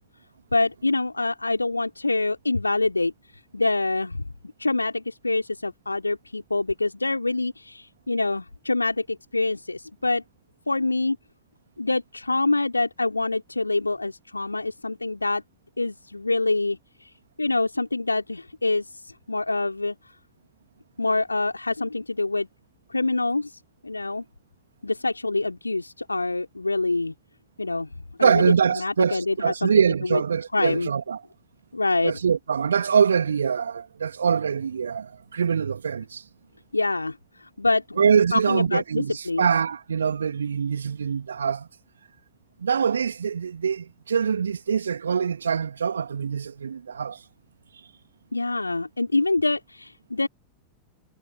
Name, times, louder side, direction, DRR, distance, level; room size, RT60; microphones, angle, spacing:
voice 1, 0.5-4.3 4.6-10.2 10.7-11.2 11.8-15.4 15.8-17.1 17.4-20.0 21.0-22.5 22.9-24.2 24.8-27.1 27.6-27.9 28.2-29.7 30.0-30.2 30.5-30.9 31.7-32.2 36.7-38.0 38.3-39.5 48.3-50.3, left 2 dB, 80° left, 3.9 m, -26 dB
voice 2, 28.2-31.2 32.0-36.2 38.0-41.7 42.6-47.2, right 6 dB, 70° right, 2.5 m, -24 dB
figure-of-eight pair, 90°, 0 cm